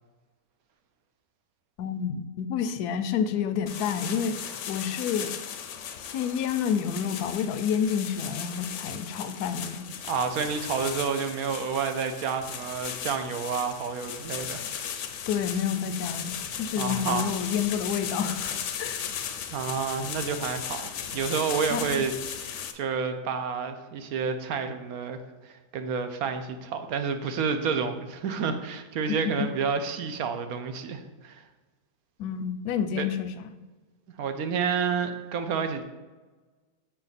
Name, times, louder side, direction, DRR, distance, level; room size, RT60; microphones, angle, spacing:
voice 1, 1.8-5.4 6.0-9.9 15.3-19.0 21.7-22.0 29.2-29.5 32.2-33.6, left 7 dB, 80° left, 11 dB, 1.1 m, -29 dB
sound 1, 3.7-22.7, left 8 dB, 65° left, 0.8 m, -36 dB
voice 2, 10.1-14.7 16.8-17.2 19.5-22.1 22.4-31.4 33.0-33.1 34.2-35.8, right 6 dB, 70° right, 8 dB, 1.1 m, -29 dB
6.6 x 6.0 x 4.0 m, 1.3 s
omnidirectional pair, 1.6 m